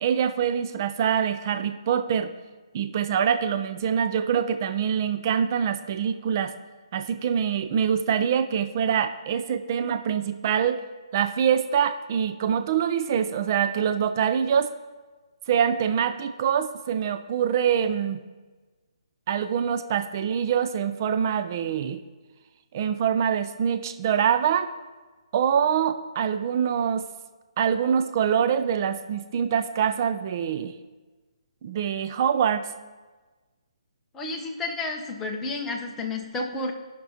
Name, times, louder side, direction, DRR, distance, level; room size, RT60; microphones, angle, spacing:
voice 1, 0.0-2.3 2.7-6.5 6.9-10.8 11.1-14.7 15.5-18.2 19.3-22.0 22.7-24.7 25.3-27.0 27.6-30.7 31.6-32.7, right 8 dB, 35° right, 9 dB, 0.4 m, -24 dB
voice 2, 34.1-36.7, left 2 dB, 10° left, 1 dB, 0.8 m, -31 dB
16.5 x 5.9 x 2.8 m, 1.3 s
hypercardioid pair, 160°, 3 cm